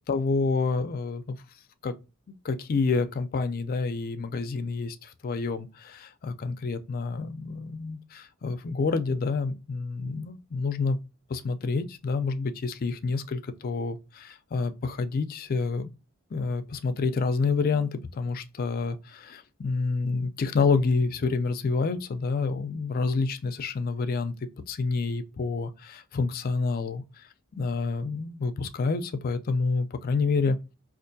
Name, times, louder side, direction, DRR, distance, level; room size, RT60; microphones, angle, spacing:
voice 1, 0.1-1.4 1.8-1.9 2.4-11.0 11.3-15.9 16.3-24.3 24.7-30.6, left 4 dB, 45° left, 0.4 m, -28 dB
4.4 x 2.4 x 2.6 m
head